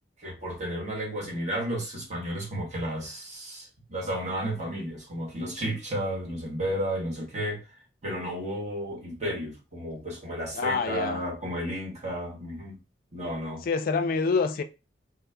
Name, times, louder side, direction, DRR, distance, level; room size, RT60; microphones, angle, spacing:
voice 1, 0.2-12.8 13.1-13.6, equal, 40° right, 1.3 m, -33 dB
voice 2, 10.5-11.2 13.6-14.6, left 4 dB, 55° left, 0.3 m, -26 dB
4.2 x 2.0 x 3.3 m
head